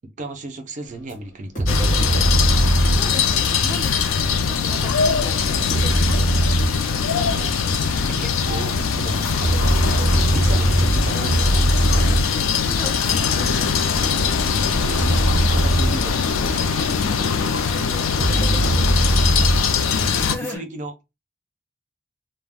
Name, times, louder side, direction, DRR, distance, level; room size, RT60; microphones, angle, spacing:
voice 1, 0.2-2.8 7.1-9.6 10.0-12.2 14.7-17.3 19.4-19.5 20.4-20.9, right 2 dB, 40° right, 0.4 m, -35 dB
sound 1, 1.1-1.2 1.5-4.0 4.3-7.6 8.5-8.6 8.9-16.4 16.8-17.3 17.7-17.8 18.2-20.5, right 1 dB, 40° left, 1.1 m, -22 dB
sound 2, 1.7-20.4, left 6 dB, 90° left, 0.4 m, -21 dB
voice 2, 3.0-5.4 12.7-14.0 17.7-18.1 20.1-20.7, left 1 dB, 10° left, 0.6 m, -37 dB
2.3 x 2.1 x 3.3 m
head